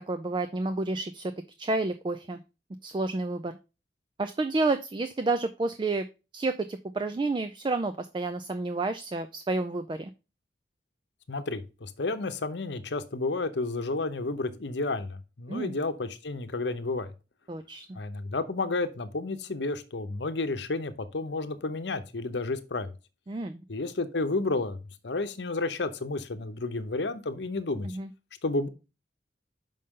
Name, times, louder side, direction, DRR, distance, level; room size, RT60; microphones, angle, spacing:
voice 1, 0.1-1.3 1.6-2.4 2.8-3.5 4.2-6.1 6.3-10.1 15.5-15.7 17.5-17.9 23.3-23.6 27.8-28.1, right 3 dB, 25° right, 10 dB, 0.3 m, -30 dB
voice 2, 11.3-17.1 17.9-22.9 23.7-24.8 25.0-28.0 28.4-28.7, left 3 dB, 80° left, 9 dB, 0.8 m, -31 dB
6.5 x 5.4 x 3.6 m, 0.30 s
head